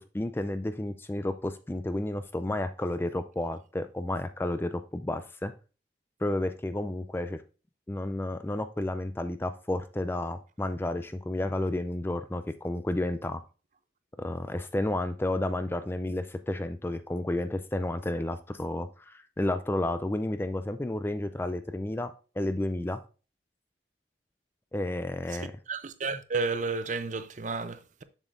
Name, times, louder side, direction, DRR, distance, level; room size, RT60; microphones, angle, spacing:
voice 1, 0.1-5.5 6.2-7.4 7.9-13.4 14.2-23.0 24.7-25.5, left 1 dB, 10° left, 0.4 m, -31 dB
voice 2, 25.7-28.0, right 4 dB, 45° right, 0.6 m, -32 dB
7.2 x 7.1 x 2.5 m
head